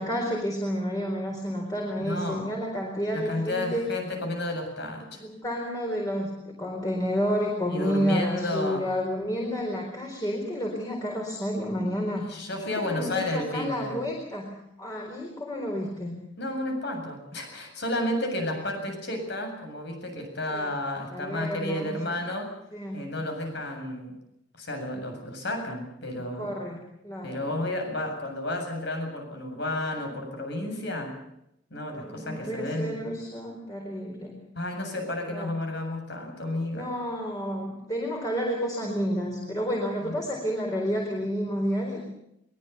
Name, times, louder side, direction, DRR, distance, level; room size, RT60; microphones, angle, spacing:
voice 1, 0.0-3.9 5.2-12.3 12.7-16.2 20.5-20.7 21.1-22.0 22.7-23.1 26.4-27.4 31.9-34.4 35.3-35.5 36.7-42.0, equal, 20° left, 0 dB, 4.3 m, -30 dB
voice 2, 2.0-2.5 3.1-5.2 7.7-8.9 12.3-14.0 16.4-22.5 22.9-24.1 24.5-26.6 27.2-31.1 31.7-33.0 34.6-36.9 40.0-40.2, left 1 dB, 60° left, 4 dB, 7.6 m, -32 dB
23.0 x 21.5 x 7.0 m, 0.79 s
head